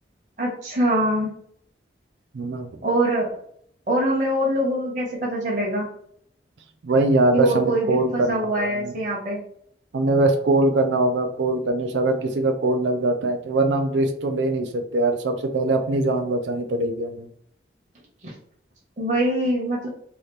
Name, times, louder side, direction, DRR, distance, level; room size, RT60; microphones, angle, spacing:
voice 1, 0.4-1.3 2.8-3.3 3.9-5.9 7.3-9.4 18.2-18.3 19.0-19.9, right 1 dB, 45° right, -3 dB, 0.9 m, -23 dB
voice 2, 2.3-2.7 6.8-8.9 9.9-17.3, right 2 dB, 90° right, 5 dB, 0.5 m, -22 dB
2.8 x 2.4 x 3.2 m, 0.65 s
head